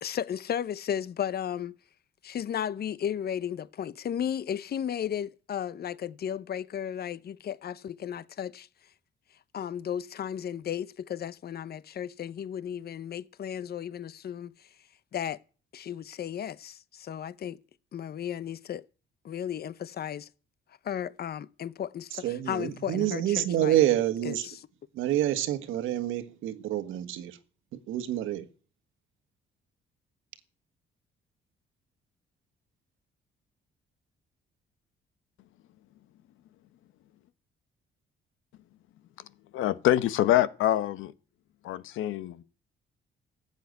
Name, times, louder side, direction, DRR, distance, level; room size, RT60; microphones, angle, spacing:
voice 1, 0.0-1.8 2.2-8.7 9.5-14.7 15.1-15.4 15.7-17.6 17.9-18.8 19.2-20.3 20.8-23.8 24.2-24.6, left 9 dB, 50° left, 0.8 m, -34 dB
voice 2, 22.2-24.5 24.9-27.4 27.9-28.5, right 13 dB, 90° right, 1.6 m, -27 dB
voice 3, 39.5-41.1 41.6-42.4, left 13 dB, 90° left, 1.1 m, -25 dB
14.5 x 8.3 x 9.4 m
cardioid pair, 90°, 20 cm